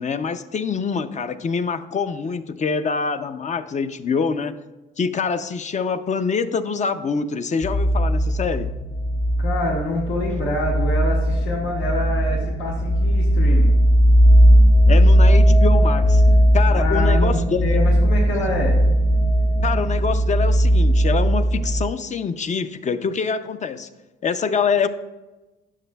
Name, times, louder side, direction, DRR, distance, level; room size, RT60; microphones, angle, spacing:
voice 1, 0.0-4.6 5.0-8.7 14.9-16.2 16.5-17.9 19.6-23.9 24.2-24.9, left 5 dB, 35° left, 10 dB, 0.5 m, -25 dB
sound 1, 7.6-21.8, equal, 55° left, 1.6 m, -17 dB
voice 2, 9.4-13.8 16.7-18.8, left 1 dB, 85° left, -2 dB, 1.4 m, -26 dB
11.0 x 6.4 x 2.3 m, 1.1 s
cardioid pair, 90°, 20 cm